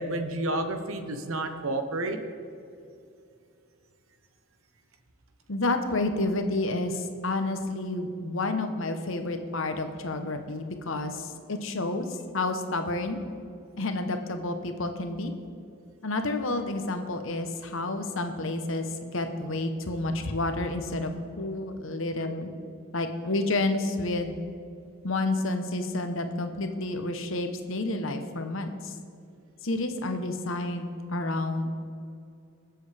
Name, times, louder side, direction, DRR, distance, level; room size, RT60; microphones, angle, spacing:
voice 1, 0.0-2.2, right 2 dB, 70° right, 7 dB, 1.0 m, -30 dB
voice 2, 5.5-13.2 13.8-15.3 16.0-18.9 19.1-22.5 22.9-24.4 25.0-28.9 29.6-31.7, left 2 dB, 65° left, 7 dB, 1.0 m, -30 dB
19.5 x 7.8 x 3.4 m, 2.5 s
head